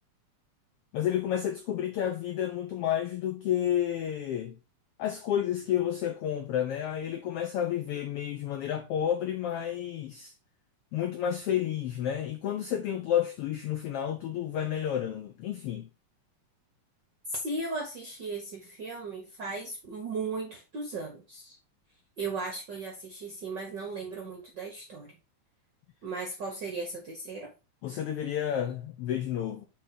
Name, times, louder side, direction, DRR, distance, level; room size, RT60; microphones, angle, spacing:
voice 1, 0.9-4.6 5.0-10.3 10.9-15.9 27.8-29.7, left 10 dB, 90° left, 1.3 m, -30 dB
voice 2, 17.3-21.6 22.2-25.1 26.0-27.5, right 3 dB, 65° right, 1.0 m, -36 dB
6.4 x 3.9 x 3.9 m
omnidirectional pair, 3.5 m